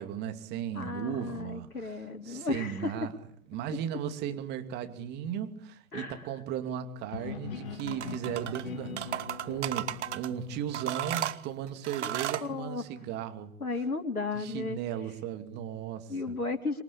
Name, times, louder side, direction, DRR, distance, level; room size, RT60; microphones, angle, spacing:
voice 1, 0.0-3.1 3.5-9.1 9.4-13.5 14.3-16.4, right 9 dB, 25° right, 7 dB, 2.6 m, -36 dB
voice 2, 0.7-2.9 5.9-6.2 12.0-12.1 12.4-12.8 13.6-14.8 16.1-16.8, left 3 dB, 85° left, 4 dB, 3.4 m, -34 dB
sound 1, 7.0-11.1, left 3 dB, 30° left, 3.8 m, -52 dB
sound 2, 7.1-12.7, left 6 dB, 65° left, 2.8 m, -43 dB
sound 3, 7.8-8.6 9.0-10.3 10.7-12.5, right 11 dB, 50° right, 1.7 m, -34 dB
26.5 x 23.5 x 8.6 m, 0.64 s
figure-of-eight pair, 130°, 43 cm